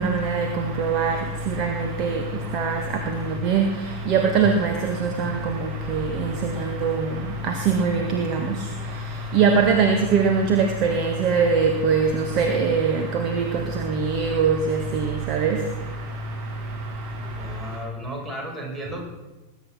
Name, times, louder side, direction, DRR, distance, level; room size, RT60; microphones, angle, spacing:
voice 1, 0.0-17.8, right 5 dB, 40° right, 1.8 m, -23 dB
voice 2, 17.3-19.1, right 1 dB, 20° right, 5.3 m, -34 dB
20.5 x 9.9 x 6.1 m
figure-of-eight pair, 90°, 0 cm